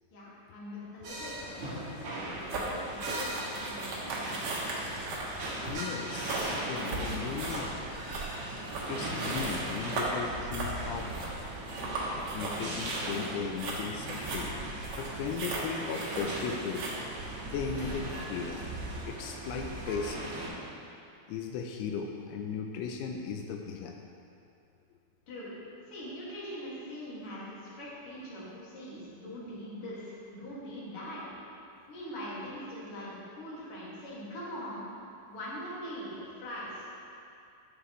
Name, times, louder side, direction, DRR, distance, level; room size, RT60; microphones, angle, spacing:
voice 1, 0.1-1.8 2.1-3.3 3.6-4.3 25.3-25.5 25.9-31.2 31.9-34.9 35.3-36.9, equal, 40° left, -8 dB, 2.3 m, -42 dB
sound 1, 1.0-20.5, right 1 dB, 55° right, 2.3 m, -39 dB
sound 2, 2.4-17.0, right 2 dB, 85° right, 1.3 m, -37 dB
voice 2, 5.7-7.7 8.9-11.4 12.3-14.6 15.0-16.9 17.5-18.8 19.0-20.2 21.3-24.1, left 6 dB, 85° left, 3 dB, 2.7 m, -37 dB
13.0 x 7.0 x 3.1 m, 2.6 s
omnidirectional pair, 4.8 m